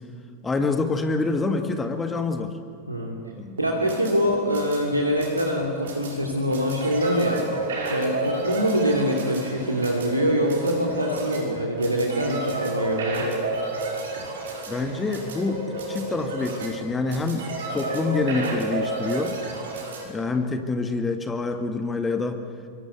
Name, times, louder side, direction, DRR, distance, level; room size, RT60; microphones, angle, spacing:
voice 1, 0.4-2.6 3.4-3.6 14.7-15.6 15.9-19.4 20.1-22.4, left 3 dB, 15° left, 6 dB, 1.9 m, -26 dB
sound 1, 3.6-20.0, right 2 dB, 60° right, 5.7 m, -31 dB
voice 2, 3.6-7.4 7.9-13.4, equal, 85° right, 0 dB, 2.9 m, -24 dB
26.0 x 23.0 x 8.2 m, 2.3 s
figure-of-eight pair, 90°, 0 cm